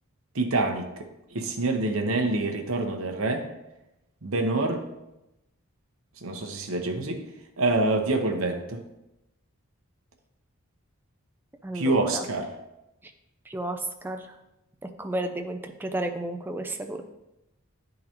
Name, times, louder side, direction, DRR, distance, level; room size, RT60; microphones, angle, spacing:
voice 1, 0.3-3.4 4.2-4.8 6.2-7.2 7.6-8.8 11.7-12.5, right 2 dB, 70° right, 4 dB, 0.9 m, -26 dB
voice 2, 11.6-12.2 13.5-14.3 15.0-17.0, right 1 dB, 10° right, 4 dB, 0.4 m, -32 dB
10.0 x 3.8 x 2.9 m, 0.92 s
head